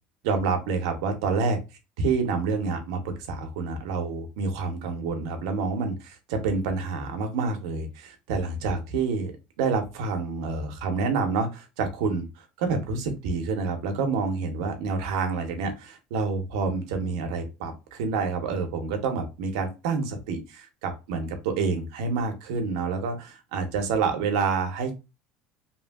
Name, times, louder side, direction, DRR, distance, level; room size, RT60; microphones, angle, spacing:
voice 1, 0.2-1.6 2.0-9.3 9.6-24.9, right 4 dB, 90° right, 5 dB, 0.7 m, -28 dB
2.8 x 2.6 x 2.2 m, 0.27 s
cardioid pair, 145°, 3 cm